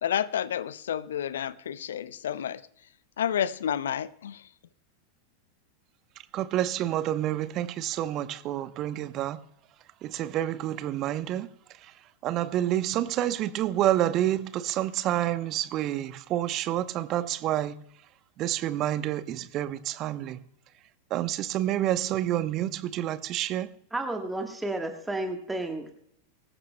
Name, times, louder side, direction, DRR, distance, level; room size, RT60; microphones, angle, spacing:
voice 1, 0.0-2.6 3.2-4.4, left 9 dB, 60° left, 0.7 m, -30 dB
voice 2, 6.3-9.4 10.0-11.5 11.8-11.9 12.2-17.8 18.4-20.4 21.1-23.7, right 13 dB, 35° right, 0.9 m, -28 dB
voice 3, 23.9-25.9, right 2 dB, 5° right, 1.5 m, -32 dB
24.0 x 14.5 x 2.2 m
figure-of-eight pair, 90°, 0 cm